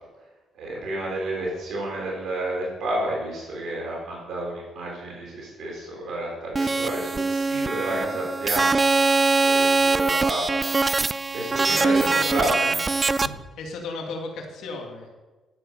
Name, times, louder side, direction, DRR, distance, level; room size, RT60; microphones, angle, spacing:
voice 1, 0.5-12.8 13.2-13.3, right 1 dB, 70° right, -3 dB, 3.9 m, -31 dB
sound 1, 6.5-13.3, right 3 dB, 25° right, 0.4 m, -22 dB
voice 2, 6.6-6.9 7.9-8.2 11.7-12.7 13.6-15.1, left 3 dB, 80° left, 1 dB, 2.1 m, -35 dB
12.0 x 7.8 x 5.3 m, 1.2 s
cardioid pair, 90°, 0 cm